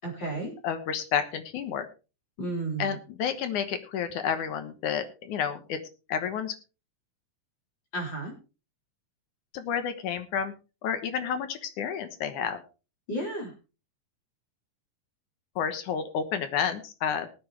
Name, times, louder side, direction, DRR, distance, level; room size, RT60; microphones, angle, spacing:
voice 1, 0.0-0.5 2.4-3.0 7.9-8.3 13.1-13.5, right 2 dB, 35° left, -1 dB, 4.1 m, -32 dB
voice 2, 0.6-1.9 2.8-5.8 6.1-6.6 9.5-10.5 10.8-12.6 15.6-17.3, left 7 dB, 70° left, 10 dB, 2.5 m, -30 dB
20.0 x 8.7 x 3.4 m, 0.32 s
omnidirectional pair, 3.8 m